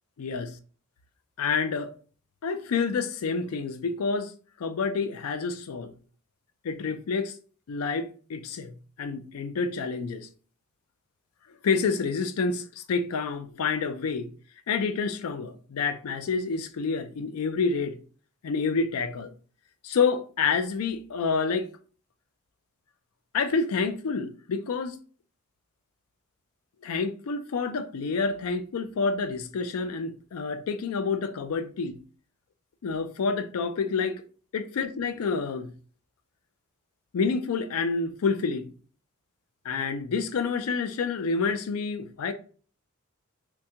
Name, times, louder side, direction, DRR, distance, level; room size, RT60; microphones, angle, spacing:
voice 1, 0.2-0.5 1.4-1.9 2.4-4.3 4.6-5.9 6.6-7.3 7.7-10.3 11.6-14.3 14.7-18.0 18.4-19.3 19.8-21.7 23.3-25.0 26.8-32.0 32.8-34.2 34.5-35.7 37.1-38.7 39.6-42.3, left 5 dB, 80° left, 0.4 m, -28 dB
3.3 x 2.2 x 2.8 m
head